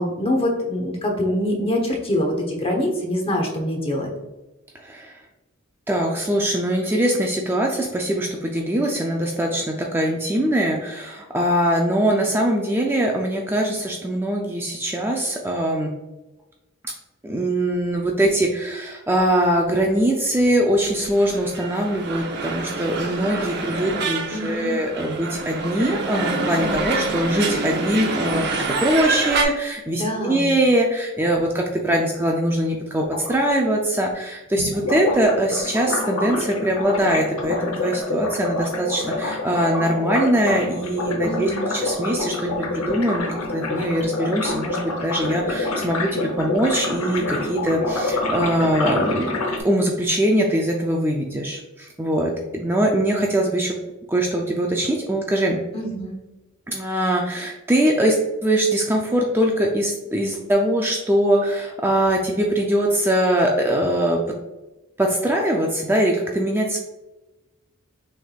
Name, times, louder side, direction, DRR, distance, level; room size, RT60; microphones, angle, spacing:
voice 1, 0.0-4.1 24.3-24.8 29.9-30.5 41.2-41.8 55.7-56.2, left 1 dB, 25° left, 1 dB, 1.0 m, -24 dB
voice 2, 4.8-5.2 5.9-15.9 17.2-28.5 28.8-53.8 54.1-55.6 56.7-64.2 65.0-66.8, right 1 dB, 10° right, 0 dB, 0.4 m, -22 dB
sound 1, 21.0-29.4, right 3 dB, 55° right, 0.7 m, -26 dB
sound 2, 33.0-33.3 34.6-49.6, left 2 dB, 80° left, 0.8 m, -27 dB
6.2 x 3.5 x 2.4 m, 1.1 s
head